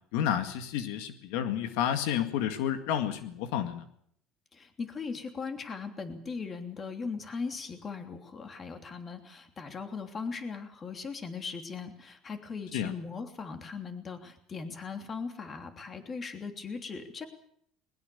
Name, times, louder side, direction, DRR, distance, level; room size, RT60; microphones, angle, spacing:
voice 1, 0.1-3.8 12.7-12.9, left 9 dB, 85° left, 8 dB, 2.0 m, -30 dB
voice 2, 4.5-17.3, left 5 dB, 25° left, 6 dB, 3.1 m, -39 dB
21.5 x 20.5 x 7.0 m, 0.68 s
cardioid pair, 140°, 0 cm